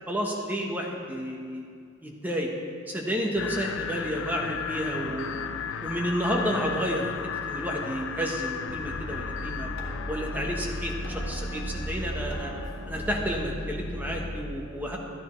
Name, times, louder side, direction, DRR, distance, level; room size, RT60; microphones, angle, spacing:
voice 1, 0.1-1.7 2.0-2.5 2.9-5.4 5.8-7.0 7.5-9.7 10.1-12.5 12.8-15.0, equal, 10° right, -1 dB, 1.1 m, -31 dB
sound 1, 3.4-12.9, left 7 dB, 70° left, 0.4 m, -36 dB
sound 2, 8.7-14.4, equal, 55° left, 1.8 m, -35 dB
13.0 x 9.6 x 3.2 m, 2.2 s
head